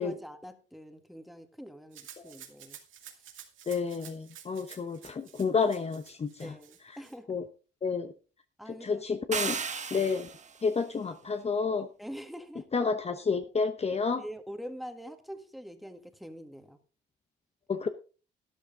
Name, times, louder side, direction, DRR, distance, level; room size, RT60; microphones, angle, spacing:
voice 1, 0.0-2.8 6.4-7.3 8.6-9.0 9.9-10.1 12.0-12.7 14.1-16.8, equal, ahead, 8 dB, 1.8 m, -44 dB
Rattle (instrument), 1.9-7.1, right 9 dB, 80° right, 2.4 m, -51 dB
voice 2, 3.7-6.5 7.3-7.4 7.8-8.1 8.8-9.6 9.9-10.3 10.6-11.9 12.7-14.2 17.7-17.9, left 5 dB, 30° left, 8 dB, 1.0 m, -30 dB
sound 1, 9.3-10.6, right 6 dB, 35° right, 1.2 m, -34 dB
12.5 x 11.0 x 3.7 m, 0.35 s
cardioid pair, 90°, 20 cm